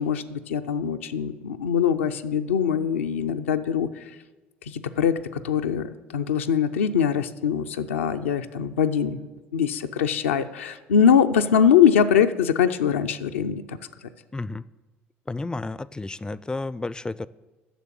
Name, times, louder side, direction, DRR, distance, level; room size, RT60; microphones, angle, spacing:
voice 1, 0.0-3.9 4.7-9.3 9.5-13.8, left 8 dB, 80° left, 7 dB, 0.5 m, -22 dB
voice 2, 14.3-14.6 15.3-17.3, left 2 dB, 10° left, 19 dB, 0.4 m, -31 dB
10.0 x 6.8 x 7.4 m, 1.2 s
figure-of-eight pair, 60°, 7 cm